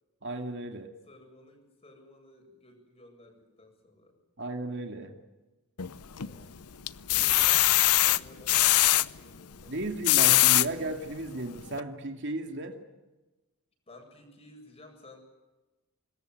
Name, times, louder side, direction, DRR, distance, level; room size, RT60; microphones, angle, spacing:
voice 1, 0.2-0.9 4.4-5.2 9.7-12.8, right 2 dB, 55° right, 4 dB, 2.3 m, -35 dB
voice 2, 1.1-4.2 6.1-6.6 7.1-9.8 13.9-15.2, left 1 dB, 30° left, 4 dB, 7.7 m, -54 dB
sound 1, 5.8-6.4 6.9-9.1 9.8-10.7 11.3-11.4 11.7-11.8, left 15 dB, 90° left, 0.8 m, -22 dB
25.5 x 21.5 x 9.4 m, 1.1 s
head